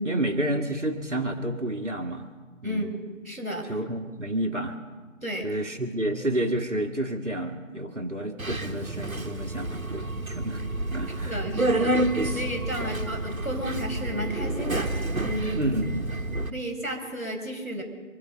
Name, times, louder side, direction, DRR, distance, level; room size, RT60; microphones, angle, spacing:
voice 1, 0.0-2.3 2.6-2.9 3.7-4.8 5.4-10.6 10.9-11.4 11.7-11.8 12.2-13.0 15.5-16.2, right 1 dB, 60° right, 3 dB, 1.7 m, -30 dB
voice 2, 2.6-3.6 5.2-5.6 11.2-15.8 16.3-17.8, equal, 5° left, -19 dB, 2.4 m, -33 dB
Subway metro underground, 8.4-16.5, right 2 dB, 80° right, 1.4 m, -29 dB
25.5 x 8.6 x 5.4 m, 1.4 s
figure-of-eight pair, 165°, 41 cm